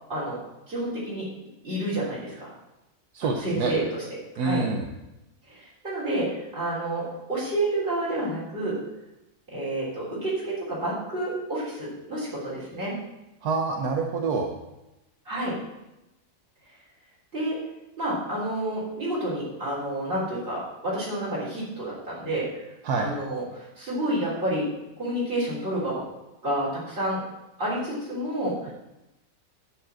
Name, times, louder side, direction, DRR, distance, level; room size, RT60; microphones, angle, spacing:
voice 1, 0.1-0.4 0.7-1.3 1.6-2.5 3.2-4.1 4.4-4.6 5.5-8.8 9.5-12.9 15.3-15.6 17.3-17.6 18.0-22.7 22.9-24.7 25.0-26.1 26.4-27.2 27.6-28.7, right 1 dB, 35° right, -9 dB, 3.8 m, -29 dB
voice 2, 3.1-3.8 4.4-4.9 13.4-14.5 22.8-23.1, right 4 dB, 80° right, 2 dB, 1.4 m, -26 dB
10.0 x 5.2 x 7.5 m, 0.94 s
omnidirectional pair, 1.6 m